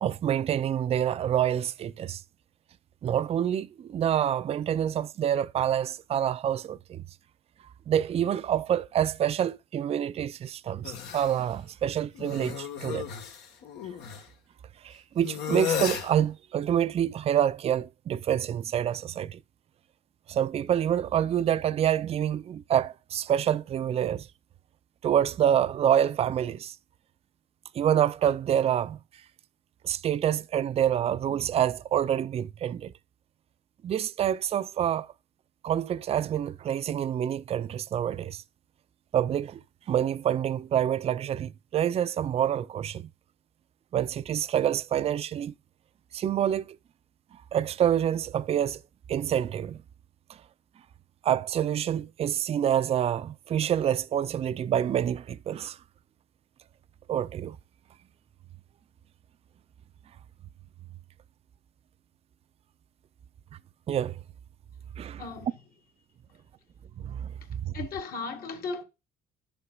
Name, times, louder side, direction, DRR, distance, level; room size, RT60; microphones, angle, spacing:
voice 1, 0.0-2.2 3.0-7.0 7.9-13.1 14.8-19.4 20.3-24.3 25.0-26.8 27.7-29.0 29.8-32.9 33.8-35.1 35.6-38.4 39.1-39.6 39.9-43.1 43.9-45.5 46.1-46.8 47.5-48.8 49.1-49.8 51.2-55.8 57.1-57.6 63.9-64.2 65.0-65.2 67.0-67.7, right 10 dB, 35° right, 0.4 m, -27 dB
sound 1, 10.8-11.4 12.1-14.2 15.2-16.1, left 8 dB, 85° left, 1.5 m, -34 dB
voice 2, 65.2-65.6 67.4-68.8, left 4 dB, 65° left, 1.9 m, -37 dB
10.5 x 6.8 x 2.4 m
cardioid pair, 110°, 17 cm